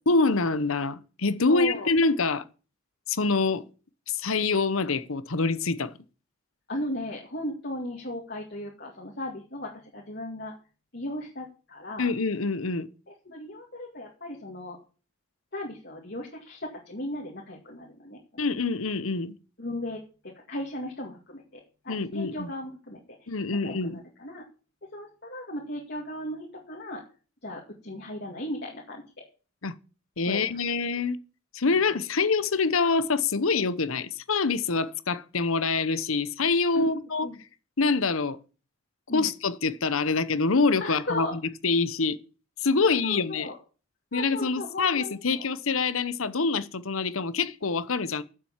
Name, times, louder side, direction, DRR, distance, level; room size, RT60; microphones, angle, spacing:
voice 1, 0.1-2.4 3.1-3.6 4.1-5.9 12.0-12.9 18.4-19.3 21.9-22.5 23.3-24.0 29.6-29.7 30.2-31.2 31.5-37.3 37.8-38.4 39.1-41.3 41.6-42.2 42.6-43.5 44.1-48.2, left 4 dB, 80° left, 1.0 m, -25 dB
voice 2, 1.4-1.9 6.7-10.5 10.9-12.1 13.1-14.8 15.5-18.5 19.6-23.4 23.6-24.4 24.9-27.0 27.4-29.0 30.3-30.4 36.7-37.4 39.1-39.3 40.8-41.4 42.8-43.6 44.1-45.4, left 1 dB, 50° left, 2.2 m, -37 dB
10.0 x 7.6 x 7.4 m
head